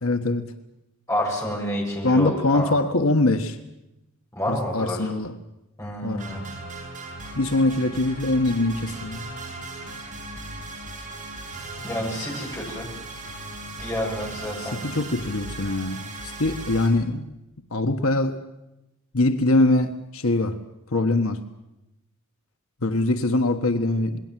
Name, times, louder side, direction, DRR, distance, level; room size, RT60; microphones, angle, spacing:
voice 1, 0.0-0.4 2.0-3.6 4.5-5.3 6.0-6.3 7.4-9.2 14.6-17.3 17.7-18.4 19.1-20.6 20.9-21.4 22.8-24.2, left 2 dB, 80° left, 7 dB, 1.5 m, -23 dB
voice 2, 1.1-2.8 4.3-5.1 5.8-6.4 11.8-12.9 13.8-14.8, equal, 15° left, -1 dB, 7.5 m, -29 dB
sound 1, 6.2-16.9, right 2 dB, 35° right, 7.9 m, -37 dB
27.0 x 21.0 x 7.7 m, 0.91 s
head